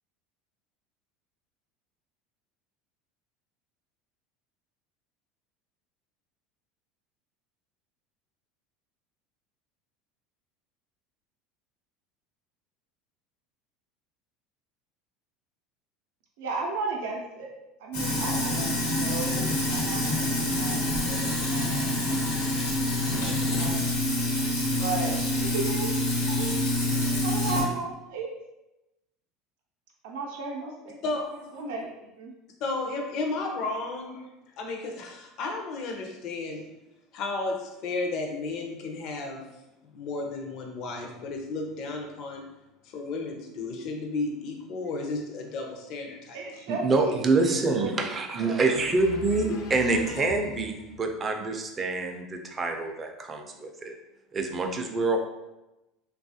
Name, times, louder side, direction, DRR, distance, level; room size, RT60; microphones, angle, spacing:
voice 1, 16.4-17.5 17.8-20.2 20.5-21.8 22.1-22.2 22.5-22.6 22.9-23.9 24.7-25.9 26.2-26.7 27.2-28.3 30.0-31.0 31.5-31.9 32.2-32.3 46.3-47.2 47.5-48.0 48.4-48.6, right 4 dB, 80° right, 0 dB, 0.5 m, -35 dB
Sink (filling or washing), 17.9-27.6, left 1 dB, 90° left, 1.1 m, -26 dB
voice 2, 31.0-31.6 32.6-34.2 34.6-36.6 37.1-39.4 39.9-42.4 42.9-46.4 48.7-50.3, left 3 dB, 55° left, 2 dB, 0.5 m, -33 dB
voice 3, 46.7-53.9 54.3-55.2, right 3 dB, 25° right, 4 dB, 0.4 m, -26 dB
3.0 x 2.3 x 2.7 m, 0.97 s
supercardioid pair, 120°, 0 cm